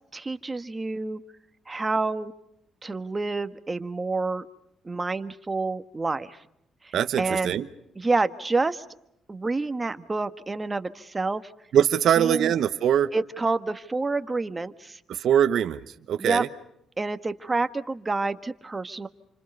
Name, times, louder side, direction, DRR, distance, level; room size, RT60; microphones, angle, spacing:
voice 1, 0.1-1.2 1.7-2.3 2.8-4.4 4.8-6.4 6.8-7.6 8.0-8.8 9.3-11.4 12.2-12.5 13.1-15.0 16.2-16.4 17.0-19.1, right 3 dB, 25° right, 10 dB, 1.5 m, -28 dB
voice 2, 6.9-7.7 11.7-13.1 15.1-16.5, right 9 dB, 70° right, 8 dB, 1.0 m, -22 dB
29.0 x 26.0 x 5.5 m, 0.80 s
cardioid pair, 90°, 0 cm